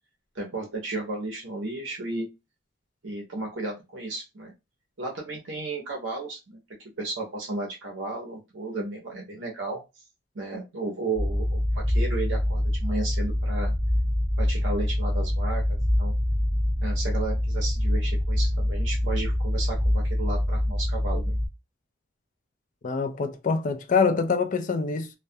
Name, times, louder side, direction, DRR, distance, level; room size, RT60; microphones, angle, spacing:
voice 1, 0.3-2.3 3.0-4.5 5.0-6.6 7.0-9.8 10.3-13.7 14.4-16.1 16.8-21.4, right 2 dB, 65° right, 0.6 m, -34 dB
sound 1, 11.2-21.5, left 1 dB, ahead, 0.6 m, -25 dB
voice 2, 22.8-25.1, left 5 dB, 40° left, 0.3 m, -25 dB
2.2 x 2.1 x 2.6 m
head